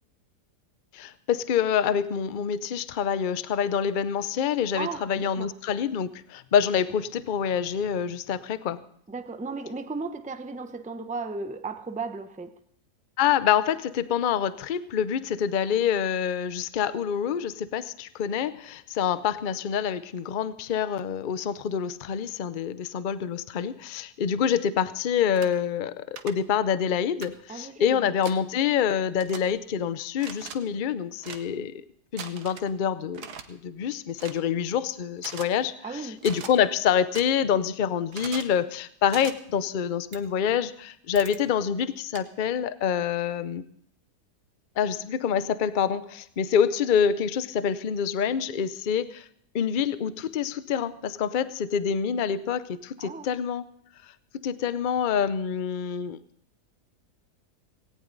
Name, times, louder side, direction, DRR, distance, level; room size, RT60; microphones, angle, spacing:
voice 1, 0.9-8.8 13.2-31.8 32.1-43.6 44.8-49.3 49.5-53.6 54.4-56.2, left 8 dB, 55° left, 14 dB, 0.5 m, -26 dB
voice 2, 4.7-5.5 9.1-12.6 27.5-28.1 35.8-36.2 53.0-53.3, right 4 dB, 10° right, 8 dB, 0.5 m, -35 dB
sound 1, 25.4-25.5 26.2-26.3 27.2-27.3 28.2-28.4 29.2-29.4 30.2-30.6 31.2-31.4 32.2-32.7 33.1-33.4 34.2-34.4 35.2-35.5 36.2-36.5 37.1-37.2 38.1-38.5 39.1-39.3 40.1-40.2 41.2-41.4 42.1-42.2, right 7 dB, 75° right, 1.6 m, -40 dB
18.0 x 18.0 x 3.9 m, 0.65 s
omnidirectional pair, 1.7 m